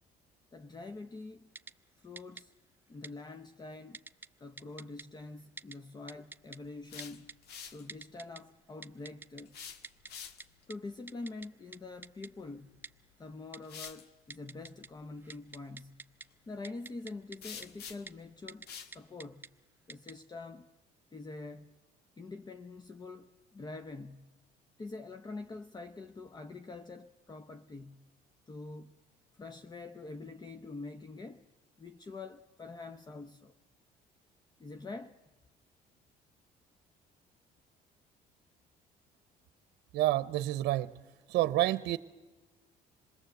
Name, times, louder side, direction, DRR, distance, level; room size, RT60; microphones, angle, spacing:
voice 1, 0.5-1.5 2.0-2.5 2.9-4.0 4.4-7.3 7.7-9.8 10.7-12.8 13.2-16.1 16.5-19.4 19.9-20.7 21.1-21.7 22.2-24.3 24.8-28.1 28.5-28.9 29.3-31.5 31.8-33.5 34.6-35.2, left 3 dB, 25° left, 0.8 m, -45 dB
Typing, 1.6-1.7 2.2-2.4 3.0-3.1 3.9-4.3 4.6-5.0 5.6-5.8 6.1-6.6 7.0-7.3 7.9-8.4 8.8-9.4 9.8-10.1 10.4-10.5 10.7-10.8 11.1-11.5 11.7-11.8 12.0-12.3 12.8-12.9 13.5-13.9 14.3-14.9 15.2-16.3 16.6-17.4 17.6-17.7 18.1-18.2 18.5-18.7 18.9-19.5 19.9-20.1, right 3 dB, 10° right, 0.7 m, -46 dB
sound 1, 6.9-7.9 9.5-10.6 12.7-12.8 13.6-14.1 17.4-18.2 18.7-19.0, left 7 dB, 75° left, 1.7 m, -47 dB
voice 2, 39.9-40.9 41.3-42.0, right 15 dB, 80° right, 0.7 m, -28 dB
26.5 x 20.5 x 7.9 m
cardioid pair, 110°, 17 cm